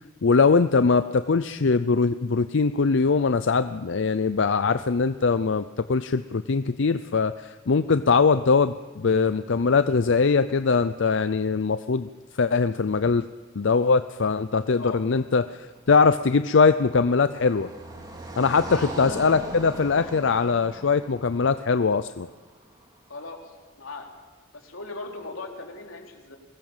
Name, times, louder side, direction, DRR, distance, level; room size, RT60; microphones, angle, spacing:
voice 1, 0.2-12.1 12.4-13.2 13.6-17.7 18.4-22.3, left 4 dB, 65° left, 11 dB, 0.5 m, -22 dB
Car passing by, 15.6-22.8, right 1 dB, 20° right, 3.6 m, -40 dB
voice 2, 18.7-19.2 23.1-24.1 24.5-26.4, left 3 dB, 90° left, 1 dB, 3.7 m, -38 dB
22.5 x 19.0 x 7.4 m, 1.4 s
head